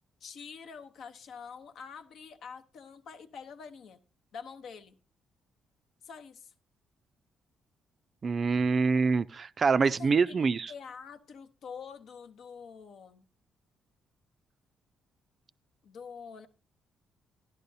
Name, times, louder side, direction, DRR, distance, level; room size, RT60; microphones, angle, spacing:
voice 1, 0.2-4.0 4.3-5.0 6.0-6.5 9.8-13.2 15.8-16.5, left 6 dB, 70° left, 0.8 m, -46 dB
voice 2, 8.2-10.7, right 4 dB, 40° right, 0.4 m, -25 dB
11.5 x 11.0 x 2.7 m
cardioid pair, 90°, 0 cm